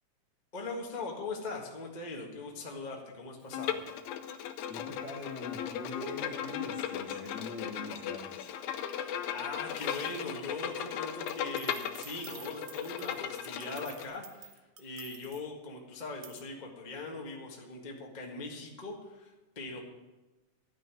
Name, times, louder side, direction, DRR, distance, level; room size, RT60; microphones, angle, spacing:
voice 1, 0.5-3.8 9.0-19.8, left 3 dB, 25° left, 0 dB, 0.9 m, -41 dB
Bowed string instrument, 3.5-14.0, left 9 dB, 75° left, 2.1 m, -37 dB
voice 2, 4.7-8.5, left 2 dB, 45° left, 0 dB, 1.5 m, -43 dB
sound 1, 9.6-10.6 11.0-15.4 16.2-16.4, right 9 dB, 75° right, 1.2 m, -51 dB
12.0 x 6.3 x 9.1 m, 1.1 s
omnidirectional pair, 3.6 m